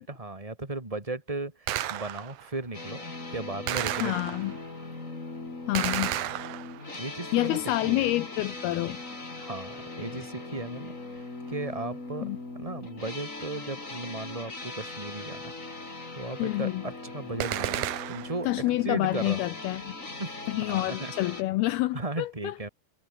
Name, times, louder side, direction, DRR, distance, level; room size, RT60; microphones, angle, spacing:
voice 1, 0.0-4.1 6.3-6.4 6.9-8.1 9.4-12.3 12.5-15.5 16.1-19.4 20.2-20.4 20.6-21.3 21.9-22.7, right 2 dB, 10° right, 2.2 m, -36 dB
Gunshot gunfire, 1.7-2.5 3.7-4.7 5.7-7.0 17.4-18.5, right 13 dB, 70° right, 1.9 m, -32 dB
sound 1, 2.7-21.4, left 2 dB, 20° left, 4.1 m, -40 dB
voice 2, 4.0-4.5 5.7-6.1 7.3-9.0 12.2-12.4 16.4-16.8 18.5-19.9 20.5-22.5, left 17 dB, 80° left, 2.4 m, -28 dB
omnidirectional pair, 5.0 m